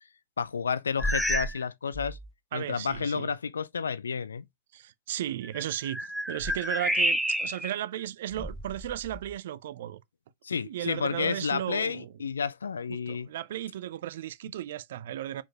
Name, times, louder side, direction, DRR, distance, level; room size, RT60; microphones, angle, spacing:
voice 1, 0.4-2.2 2.5-4.5 10.4-13.3, left 6 dB, 75° left, 0.3 m, -31 dB
sound 1, 1.0-1.6 1.9-2.3 2.9-3.0 5.4-7.8 8.3-9.3, equal, ahead, 0.6 m, -30 dB
voice 2, 2.5-3.3 4.7-10.0 10.6-12.1 12.9-15.4, right 12 dB, 60° right, 0.4 m, -35 dB
4.5 x 4.1 x 2.8 m
figure-of-eight pair, 95°, 0 cm